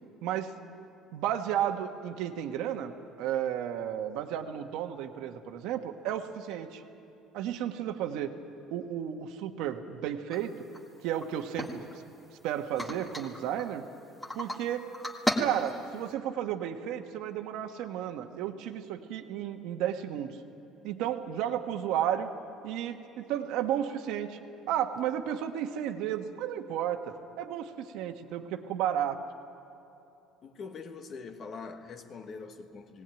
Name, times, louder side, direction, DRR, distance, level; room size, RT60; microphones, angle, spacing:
voice 1, 0.2-0.6 1.1-2.9 3.2-6.8 7.3-8.3 8.7-10.7 11.0-11.8 12.4-13.8 14.3-14.9 15.4-20.4 20.8-22.3 22.6-24.4 24.7-29.2, right 10 dB, 70° right, 1.3 m, -33 dB
sound 1, 10.3-10.4 10.7-10.8 11.2-12.3 12.8-13.7 14.2-14.6 14.9-16.1, left 1 dB, 10° left, 1.7 m, -34 dB
voice 2, 30.4-33.0, left 4 dB, 35° left, 1.3 m, -43 dB
19.0 x 18.5 x 9.1 m
cardioid pair, 155°, 0 cm